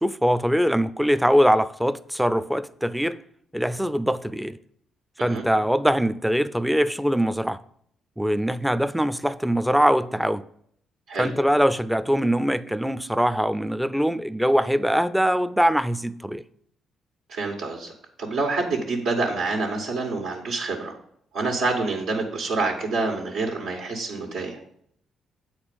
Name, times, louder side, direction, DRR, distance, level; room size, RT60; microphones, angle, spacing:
voice 1, 0.0-3.2 3.5-4.6 5.2-7.6 8.2-10.4 11.2-16.4, equal, 5° right, 0.4 m, -22 dB
voice 2, 17.3-17.9 18.2-20.9 21.3-24.6, right 3 dB, 85° right, 1.6 m, -27 dB
8.1 x 4.3 x 6.8 m
cardioid pair, 90°, 0 cm